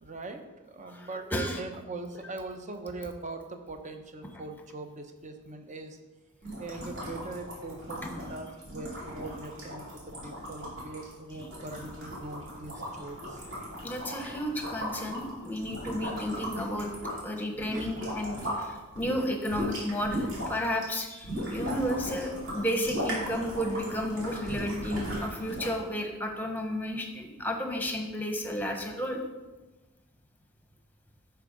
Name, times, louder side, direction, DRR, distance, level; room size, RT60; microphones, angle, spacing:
voice 1, 0.0-6.0 6.6-13.4 17.7-18.0, right 3 dB, 35° right, 6 dB, 0.8 m, -41 dB
voice 2, 0.9-1.6 6.5-6.6 8.0-8.1 13.8-16.9 17.2-29.2, equal, 10° left, 3 dB, 1.0 m, -32 dB
sound 1, 6.4-18.6 18.9-25.8, equal, 55° right, 3.4 m, -37 dB
11.5 x 4.6 x 5.2 m, 1.2 s
head